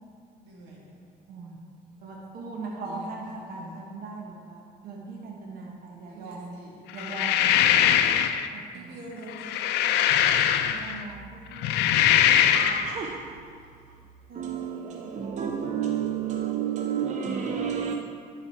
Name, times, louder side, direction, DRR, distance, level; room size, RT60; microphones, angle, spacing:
voice 1, 0.4-0.9 2.8-3.8 6.1-7.2 8.7-10.4, right 1 dB, 85° right, 2.1 m, -47 dB
voice 2, 2.0-6.6 6.9-7.6 8.5-9.5 10.7-11.9 14.3-14.5 14.9-15.6, right 3 dB, 60° right, 1.2 m, -40 dB
sound 1, 7.0-8.5 9.3-11.0 11.5-12.9, left 10 dB, 85° left, 0.4 m, -22 dB
voice 3, 12.5-13.6 14.4-17.9, right 8 dB, 45° right, 0.6 m, -31 dB
11.0 x 4.9 x 4.4 m
cardioid pair, 110°, 17 cm